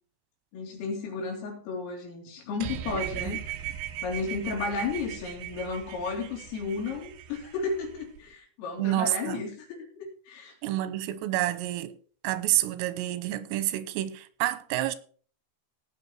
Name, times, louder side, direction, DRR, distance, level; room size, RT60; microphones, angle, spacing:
voice 1, 0.5-3.4 4.0-10.5, left 4 dB, 85° left, 6.0 m, -33 dB
sound 1, 2.6-8.2, right 12 dB, 70° right, 2.9 m, -38 dB
voice 2, 8.8-9.4 10.6-11.9 12.2-15.0, right 14 dB, 90° right, 3.5 m, -28 dB
17.5 x 6.6 x 4.6 m
omnidirectional pair, 5.7 m